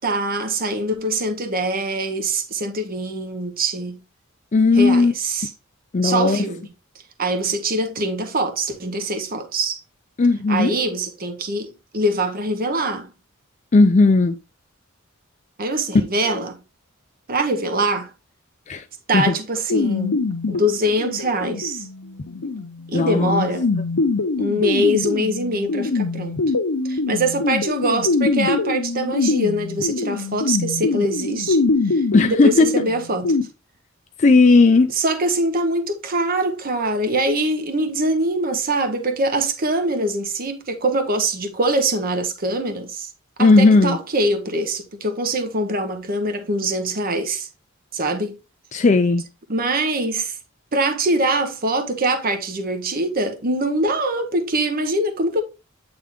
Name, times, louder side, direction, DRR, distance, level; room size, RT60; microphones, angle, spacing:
voice 1, 0.0-4.0 4.8-5.5 6.0-6.6 7.2-9.8 10.5-13.1 15.6-16.6 17.3-18.1 19.1-20.2 20.5-21.9 22.9-23.7 24.4-26.4 26.8-33.4 35.0-43.1 43.4-47.5 47.9-48.4 49.5-50.4 50.7-55.4, right 1 dB, 45° right, 1.0 m, -23 dB
voice 2, 4.5-5.1 5.9-6.5 10.2-10.7 13.7-14.4 18.7-18.8 19.1-19.3 22.9-23.5 32.1-32.7 34.2-34.9 43.4-44.0 48.7-49.2, left 3 dB, 35° left, 0.4 m, -15 dB
sound 1, 19.7-33.4, left 3 dB, 85° left, 0.8 m, -24 dB
8.8 x 3.4 x 3.6 m
head